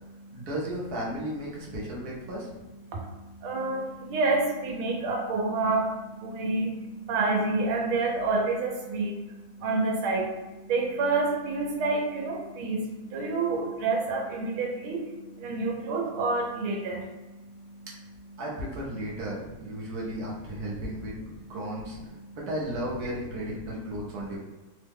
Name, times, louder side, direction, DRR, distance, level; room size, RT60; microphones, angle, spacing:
voice 1, 0.3-2.5 17.9-18.0 18.4-21.2 21.5-22.0 22.3-24.4, right 1 dB, 65° right, -4 dB, 1.0 m, -34 dB
voice 2, 2.9-17.9 22.2-22.4, right 3 dB, 85° right, 0 dB, 1.5 m, -29 dB
3.6 x 2.1 x 3.4 m, 1.2 s
omnidirectional pair, 2.3 m